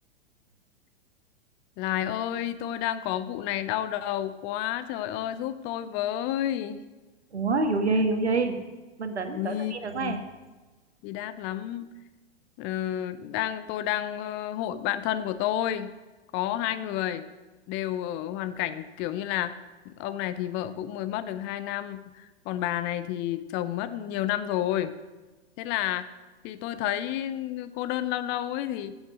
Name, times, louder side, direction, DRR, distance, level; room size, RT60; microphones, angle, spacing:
voice 1, 1.8-6.8 9.3-9.7 10.0-10.2 11.0-11.9 12.6-15.9 16.3-17.2 17.7-19.6 19.8-24.9 25.6-26.1 26.4-28.9, left 12 dB, 35° left, 12 dB, 0.7 m, -30 dB
voice 2, 7.3-8.6 9.0-10.2, right 3 dB, 80° right, 7 dB, 1.5 m, -26 dB
14.5 x 7.2 x 6.3 m, 1.2 s
figure-of-eight pair, 100°, 33 cm